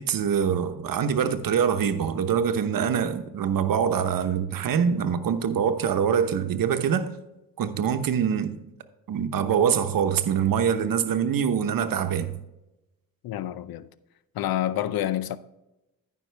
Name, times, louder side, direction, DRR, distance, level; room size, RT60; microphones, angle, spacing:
voice 1, 0.0-7.1 7.6-8.6 9.1-12.4, right 7 dB, 65° right, 1.0 m, -24 dB
voice 2, 13.2-13.9 14.3-15.4, left 12 dB, 75° left, 0.6 m, -28 dB
14.0 x 5.6 x 3.4 m
cardioid pair, 70°, 36 cm